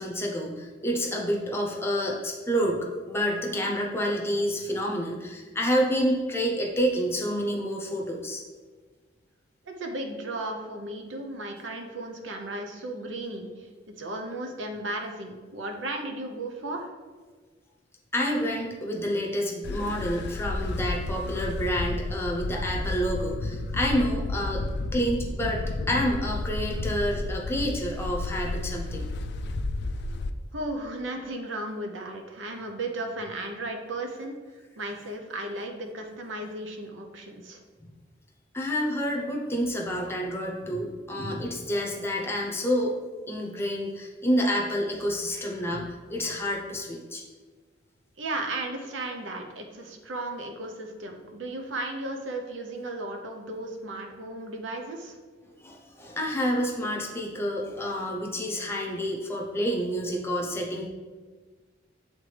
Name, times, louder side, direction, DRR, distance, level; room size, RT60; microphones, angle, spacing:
voice 1, 0.0-8.4 18.1-24.7 24.9-29.1 38.5-42.9 43.3-47.2 55.6-60.9, equal, 15° left, -1 dB, 0.8 m, -28 dB
voice 2, 9.6-16.9 30.5-34.4 34.8-37.6 48.2-55.2, right 2 dB, 80° right, 3 dB, 0.8 m, -35 dB
sound 1, 19.6-30.3, left 2 dB, 60° left, 0.3 m, -32 dB
8.0 x 3.7 x 3.3 m, 1.4 s
head